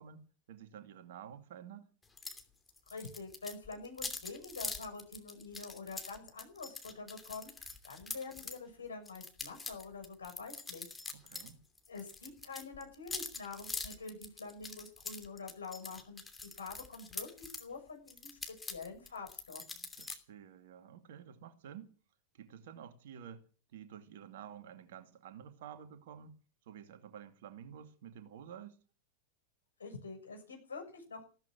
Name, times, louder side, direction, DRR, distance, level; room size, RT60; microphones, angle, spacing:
voice 1, 0.0-1.9 11.1-11.6 20.0-21.9 22.3-28.8, right 9 dB, 55° right, 2.4 m, -51 dB
sound 1, 2.2-2.4 2.7-8.6 9.1-11.5 11.8-17.7 18.1-20.2, left 3 dB, 10° left, 2.8 m, -44 dB
voice 2, 2.9-10.9 11.9-16.2 16.5-19.9 29.8-31.2, left 4 dB, 70° left, 6.7 m, -46 dB
15.5 x 13.5 x 6.2 m
figure-of-eight pair, 90°, 0 cm